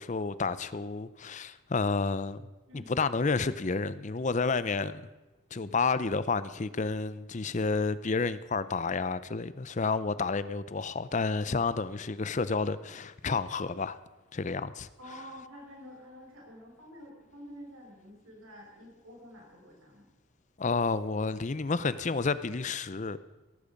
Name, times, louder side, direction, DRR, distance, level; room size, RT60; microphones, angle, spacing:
voice 1, 0.0-2.4 2.7-5.0 5.5-14.0 14.3-14.9 20.6-23.2, left 4 dB, 35° left, 0.6 m, -30 dB
voice 2, 15.0-20.1, equal, 85° right, 6.1 m, -49 dB
17.0 x 15.5 x 5.2 m
head